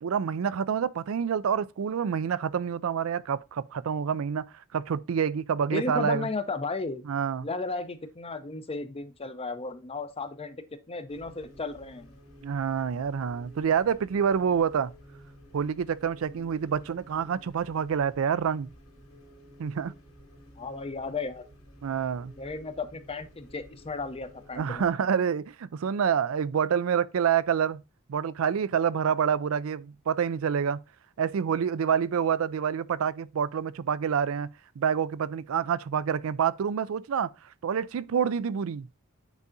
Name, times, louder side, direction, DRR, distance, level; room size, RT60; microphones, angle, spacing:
voice 1, 0.0-4.4 4.7-6.3 7.1-7.5 12.4-14.9 15.5-18.7 19.6-20.0 21.8-22.3 24.6-27.8 28.1-30.8 31.2-34.5 34.8-37.3 37.6-38.9, right 7 dB, 75° right, 0.4 m, -27 dB
voice 2, 5.7-7.0 7.4-12.1 20.6-21.5 22.4-24.9, left 3 dB, 30° left, 0.6 m, -34 dB
sound 1, 11.1-24.9, equal, 75° left, 2.2 m, -53 dB
8.2 x 4.7 x 2.6 m
head